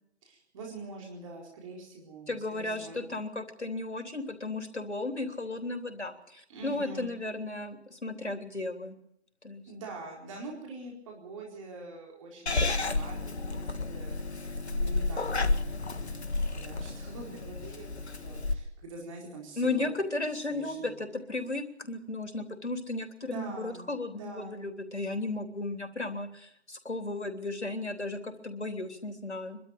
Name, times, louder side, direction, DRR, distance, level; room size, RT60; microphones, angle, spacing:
voice 1, 0.2-3.1 6.5-7.2 9.7-14.2 14.7-15.2 15.9-19.9 20.5-21.0 23.2-24.6, right 3 dB, 30° right, -1 dB, 4.3 m, -45 dB
voice 2, 2.3-9.0 9.4-9.6 19.6-29.6, left 2 dB, 85° left, 5 dB, 3.4 m, -35 dB
Purr / Meow, 12.5-18.5, left 3 dB, 70° left, 1.7 m, -31 dB
23.5 x 12.5 x 8.9 m, 0.77 s
figure-of-eight pair, 150°, 34 cm